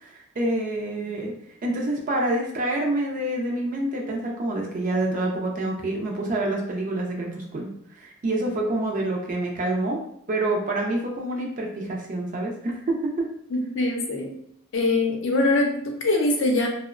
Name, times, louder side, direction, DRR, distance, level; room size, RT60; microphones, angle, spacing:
voice 1, 0.0-1.3 1.6-10.0 10.3-13.0, right 1 dB, 40° right, 0 dB, 0.4 m, -27 dB
voice 2, 13.5-14.3 14.7-16.7, left 2 dB, 65° left, 1 dB, 0.5 m, -23 dB
2.8 x 2.0 x 2.4 m, 0.70 s
head